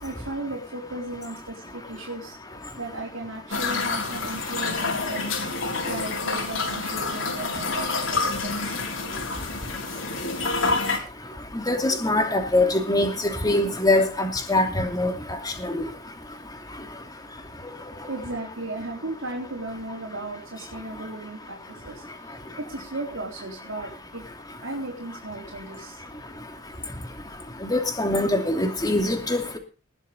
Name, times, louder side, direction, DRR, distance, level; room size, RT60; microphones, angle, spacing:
voice 1, 0.0-9.2 18.1-24.3 24.6-26.0, right 2 dB, 75° right, -3 dB, 4.2 m, -36 dB
sound 1, 3.5-11.0, left 3 dB, 75° left, 4.1 m, -28 dB
voice 2, 11.5-13.1 13.4-15.1 15.6-15.7 27.6-29.6, left 2 dB, 20° left, 4 dB, 2.8 m, -23 dB
20.0 x 7.3 x 5.3 m, 0.35 s
head